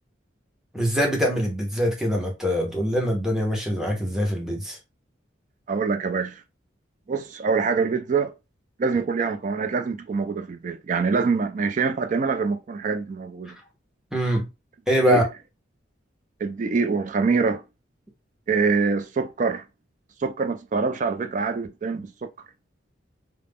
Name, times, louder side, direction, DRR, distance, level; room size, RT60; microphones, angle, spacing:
voice 1, 0.7-4.8 14.1-14.5 14.9-15.2, equal, ahead, 0.7 m, -23 dB
voice 2, 5.7-6.4 7.1-8.3 8.8-13.6 15.0-15.2 16.4-17.6 18.5-19.6 20.2-22.1, right 4 dB, 40° right, 0.3 m, -25 dB
2.3 x 2.0 x 3.4 m
head